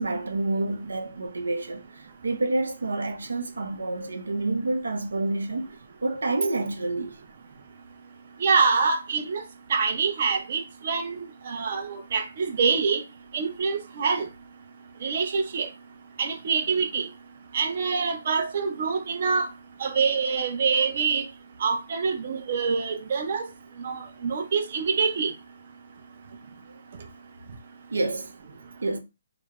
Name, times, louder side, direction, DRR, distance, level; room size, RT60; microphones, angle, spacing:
voice 1, 0.0-5.7 6.0-7.2 27.9-28.3 28.8-29.0, right 2 dB, 90° right, 0.5 m, -28 dB
voice 2, 8.4-9.4 9.7-13.0 13.3-14.3 15.0-15.7 16.2-17.1 17.5-19.5 19.8-21.2 21.6-23.5 23.8-25.3, right 5 dB, 45° right, 0.6 m, -25 dB
2.2 x 2.0 x 3.5 m
hypercardioid pair, 160°, 0 cm